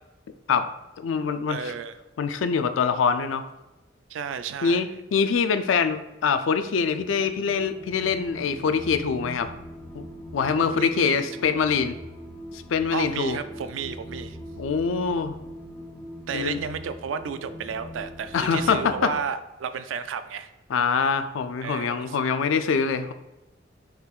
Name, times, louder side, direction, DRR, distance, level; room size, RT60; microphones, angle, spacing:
voice 1, 1.0-1.7 2.2-3.4 4.6-9.5 9.9-10.0 10.3-12.0 12.5-13.4 14.6-15.3 16.3-16.6 18.3-19.1 20.7-23.1, left 5 dB, 85° left, 10 dB, 0.4 m, -24 dB
voice 2, 1.5-1.9 4.1-5.0 10.6-11.5 12.9-14.4 16.3-20.5 21.6-22.2, right 6 dB, 80° right, 11 dB, 0.3 m, -33 dB
sound 1, 7.0-19.1, equal, 15° left, 0.9 m, -41 dB
5.6 x 3.9 x 2.4 m, 1.0 s
head